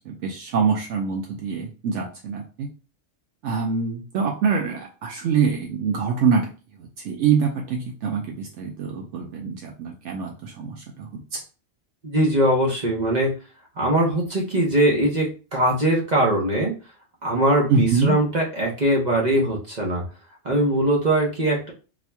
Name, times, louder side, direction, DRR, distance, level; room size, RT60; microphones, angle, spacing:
voice 1, 0.0-2.7 3.4-6.5 6.8-11.4 17.7-18.2, right 5 dB, 75° right, 0 dB, 0.9 m, -25 dB
voice 2, 12.0-13.3 13.8-16.7 17.2-20.0 20.4-21.7, right 1 dB, 40° right, -2 dB, 0.9 m, -21 dB
4.1 x 2.9 x 2.2 m, 0.35 s
omnidirectional pair, 1.3 m